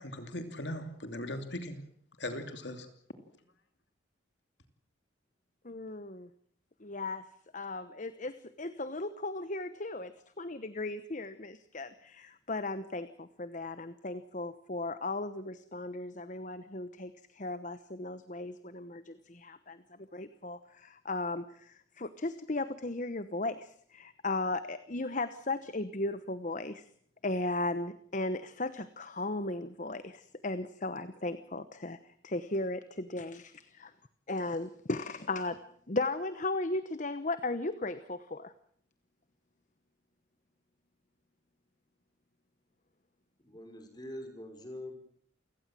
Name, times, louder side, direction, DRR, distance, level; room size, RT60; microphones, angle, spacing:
voice 1, 0.0-1.8 2.2-2.9, left 1 dB, 65° left, 7 dB, 2.8 m, -39 dB
voice 2, 5.6-6.3 6.8-7.2 7.5-19.8 20.1-26.8 27.2-33.9 34.3-35.6 35.9-38.5, left 2 dB, 40° left, 12 dB, 1.0 m, -36 dB
voice 3, 43.4-45.0, left 1 dB, 20° left, 4 dB, 5.4 m, -44 dB
28.5 x 17.5 x 7.6 m, 0.63 s
head